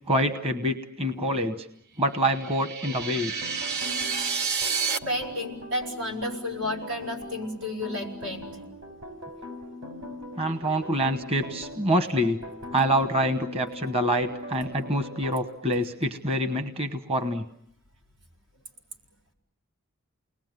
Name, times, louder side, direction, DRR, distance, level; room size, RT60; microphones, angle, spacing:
voice 1, 0.1-1.7 2.0-3.3 10.4-12.4 12.7-17.4, equal, 25° right, 9 dB, 1.1 m, -26 dB
sound 1, 2.2-5.0, right 5 dB, 50° right, 1.1 m, -29 dB
sound 2, 2.8-15.4, left 1 dB, 65° right, 5.9 m, -41 dB
voice 2, 5.1-8.6, left 1 dB, 85° right, 0 dB, 5.7 m, -32 dB
29.5 x 20.5 x 9.4 m, 0.73 s
head